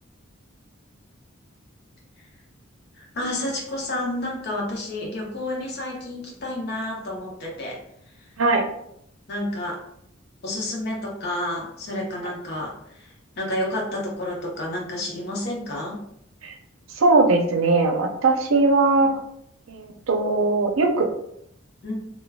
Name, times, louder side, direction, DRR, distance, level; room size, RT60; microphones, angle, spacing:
voice 1, 3.0-7.8 9.3-9.8 10.4-16.0 21.8-22.0, left 1 dB, 55° left, -2 dB, 0.7 m, -30 dB
voice 2, 17.0-19.2 19.7-21.1, right 3 dB, 85° right, 4 dB, 0.5 m, -20 dB
3.3 x 2.2 x 2.3 m, 0.72 s
head